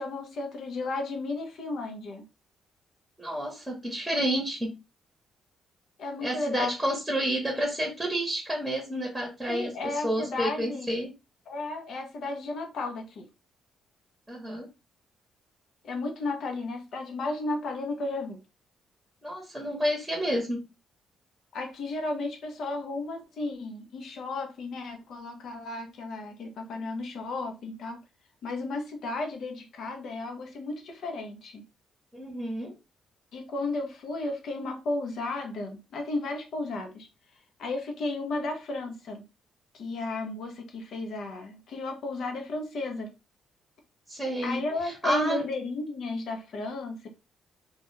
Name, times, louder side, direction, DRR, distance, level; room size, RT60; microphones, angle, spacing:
voice 1, 0.0-2.2 6.0-6.7 9.5-10.9 11.5-13.3 15.8-18.4 21.5-28.0 28.4-31.6 33.3-37.1 37.6-39.2 39.7-43.1 44.4-47.1, left 2 dB, 65° left, 0.7 m, -34 dB
voice 2, 3.2-4.7 6.2-11.1 14.3-14.7 19.2-20.6 32.1-32.7 44.1-45.4, equal, 5° right, 0.9 m, -30 dB
2.4 x 2.2 x 3.0 m
cardioid pair, 90°, 0 cm